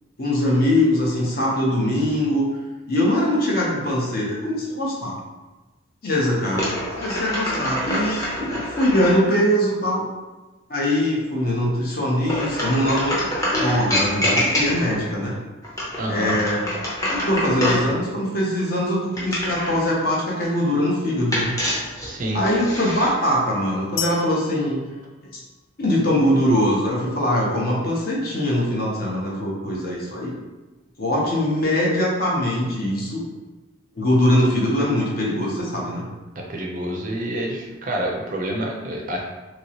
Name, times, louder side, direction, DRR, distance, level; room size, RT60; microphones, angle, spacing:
voice 1, 0.2-2.5 2.9-5.1 6.0-6.7 7.0-10.0 10.7-15.3 16.1-16.6 17.2-21.5 22.3-24.9 25.2-25.4 25.8-30.4 31.0-33.2 33.9-36.0, left 1 dB, 50° left, -4 dB, 0.8 m, -22 dB
sound 1, 6.5-9.2 12.2-15.0 15.6-17.9 19.1-19.8 21.3-23.1, equal, 15° left, 0.7 m, -26 dB
voice 2, 16.0-16.4 22.1-22.4 36.5-39.2, right 1 dB, 40° right, 0 dB, 0.4 m, -27 dB
sound 2, 24.0-25.9, left 8 dB, 80° left, 0.3 m, -34 dB
2.9 x 2.9 x 2.8 m, 1.2 s
head